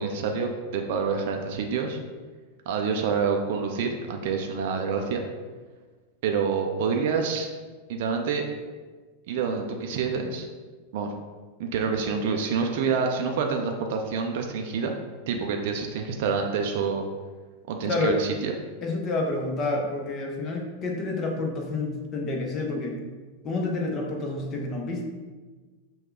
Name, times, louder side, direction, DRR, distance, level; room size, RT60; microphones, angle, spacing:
voice 1, 0.0-2.0 2.7-5.2 6.2-7.5 7.9-8.5 9.3-10.5 10.9-11.1 11.6-14.9 15.3-17.0 17.7-18.5, right 5 dB, 50° right, 3 dB, 0.4 m, -27 dB
voice 2, 18.8-23.0 23.4-25.0, left 2 dB, 30° left, 1 dB, 0.8 m, -29 dB
5.3 x 2.3 x 3.8 m, 1.4 s
figure-of-eight pair, 90°, 0 cm